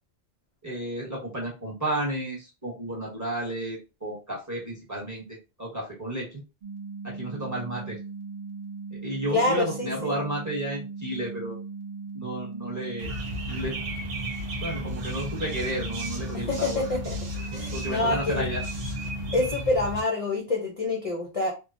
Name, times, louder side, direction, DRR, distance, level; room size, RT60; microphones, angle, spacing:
voice 1, 0.6-6.4 7.0-8.0 8.9-11.6 12.1-13.1 13.4-13.7 14.6-16.8 17.7-18.6, right 1 dB, 15° right, -3 dB, 0.9 m, -32 dB
sound 1, 6.6-19.5, right 4 dB, 50° right, 0.4 m, -38 dB
voice 2, 9.3-10.1 16.3-17.2 17.5-18.4 19.3-21.5, left 2 dB, 40° left, -1 dB, 0.5 m, -27 dB
sound 2, 13.0-20.0, left 1 dB, 80° right, 1.0 m, -34 dB
3.1 x 2.1 x 2.5 m, 0.29 s
omnidirectional pair, 1.3 m